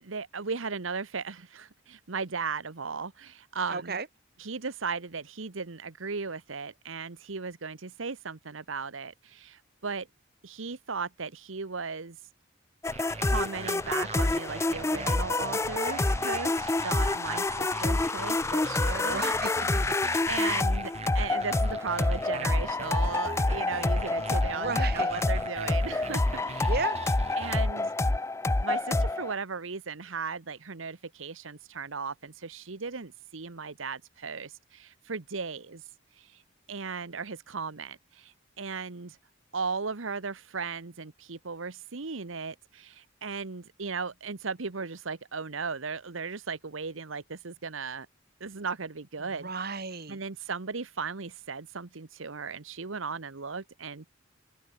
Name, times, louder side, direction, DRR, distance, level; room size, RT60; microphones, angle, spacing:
voice 1, 0.0-4.0 4.4-10.1 10.4-12.2 13.2-19.2 20.3-26.7 27.3-27.9 28.6-35.8 36.2-36.4 36.7-39.2 39.5-48.1 48.4-49.8 50.1-54.1, right 5 dB, 80° right, 1.1 m, -36 dB
voice 2, 3.7-4.1 19.0-19.9 24.5-25.3 26.6-27.0 49.4-50.2, right 4 dB, 50° right, 1.9 m, -34 dB
sound 1, 12.8-29.3, left 2 dB, 15° left, 0.4 m, -27 dB
sound 2, 12.9-27.6, right 3 dB, 30° right, 1.7 m, -42 dB
Rattle, 20.4-27.1, right 2 dB, 15° right, 1.8 m, -52 dB
open air
head